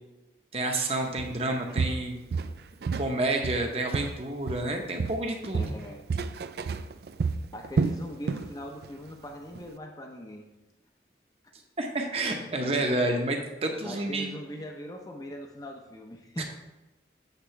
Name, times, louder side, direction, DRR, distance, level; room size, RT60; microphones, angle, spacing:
voice 1, 0.5-2.2 3.0-5.7 11.8-14.3 16.4-16.5, right 2 dB, 35° right, 3 dB, 0.8 m, -29 dB
Walk footsteps, 1.2-1.4 1.8-3.1 3.4-4.7 5.0-8.5 8.8-9.1 9.5-9.6, right 4 dB, 60° right, 0.3 m, -30 dB
voice 2, 5.5-6.0 7.5-10.4 12.6-13.0 13.8-16.4, left 1 dB, 20° left, 2 dB, 0.6 m, -41 dB
8.2 x 3.6 x 5.7 m, 1.0 s
head